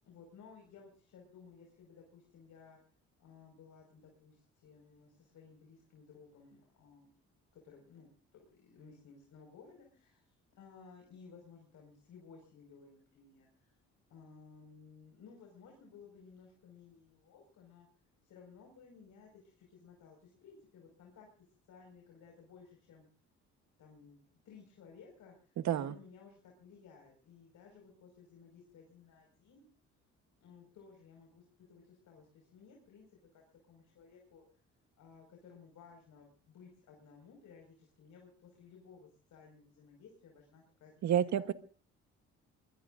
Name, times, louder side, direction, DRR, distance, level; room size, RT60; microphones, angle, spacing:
voice 1, 0.0-2.8 3.2-7.1 7.5-13.7 14.1-17.9 18.2-23.1 23.8-29.7 30.4-33.1 33.3-34.4 35.0-40.9 41.2-41.5, left 5 dB, 75° left, 1 dB, 5.6 m, -58 dB
voice 2, 41.0-41.5, right 10 dB, 65° right, 11 dB, 1.3 m, -29 dB
22.5 x 22.0 x 2.6 m, 0.41 s
cardioid pair, 90°, 30 cm